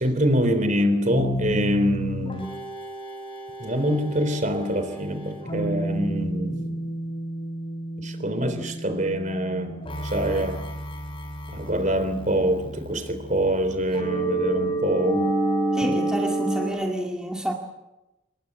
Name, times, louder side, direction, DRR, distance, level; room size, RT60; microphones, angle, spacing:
voice 1, 0.0-2.5 3.6-6.9 8.0-10.6 11.5-15.3 15.9-16.0, equal, 35° right, 9 dB, 3.5 m, -25 dB
sound 1, 1.1-16.7, right 1 dB, 25° left, 5.7 m, -30 dB
voice 2, 15.7-17.5, right 1 dB, 5° right, 0 dB, 2.3 m, -28 dB
27.5 x 22.0 x 8.3 m, 0.98 s
head